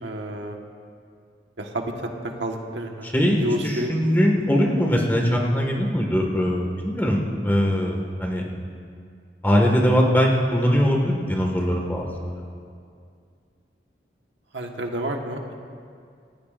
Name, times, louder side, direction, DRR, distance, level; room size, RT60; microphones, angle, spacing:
voice 1, 0.0-0.6 1.6-2.1 2.4-3.9 14.5-15.5, right 1 dB, 85° right, 2 dB, 1.5 m, -30 dB
voice 2, 3.6-8.4 9.4-12.3, equal, 10° left, 0 dB, 1.8 m, -21 dB
28.0 x 14.5 x 2.6 m, 2.3 s
head